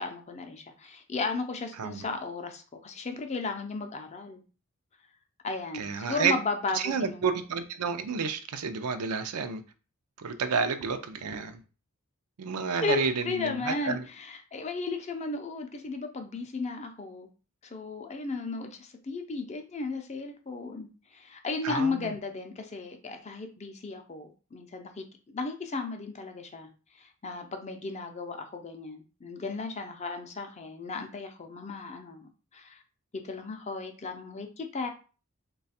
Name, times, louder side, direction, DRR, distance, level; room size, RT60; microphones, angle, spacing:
voice 1, 0.0-4.4 5.4-7.3 12.8-17.3 17.6-20.9 21.1-26.7 26.9-32.8 33.1-34.9, left 3 dB, 30° left, 0.5 m, -35 dB
voice 2, 5.7-6.3 6.7-9.6 10.2-11.6 12.4-14.0 21.6-22.1, right 5 dB, 85° right, 0.5 m, -30 dB
3.2 x 2.3 x 4.1 m
head